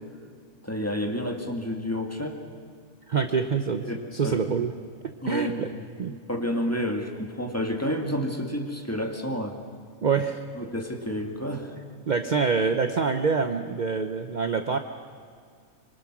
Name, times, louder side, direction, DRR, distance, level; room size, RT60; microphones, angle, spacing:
voice 1, 0.6-2.4 3.8-4.7 5.2-9.6 10.6-11.7, equal, 10° left, 3 dB, 2.0 m, -30 dB
voice 2, 3.1-4.7 5.0-5.7 6.0-6.2 10.0-10.4 12.1-14.8, right 5 dB, 40° right, 7 dB, 0.8 m, -26 dB
25.5 x 24.5 x 6.2 m, 2.2 s
omnidirectional pair, 1.3 m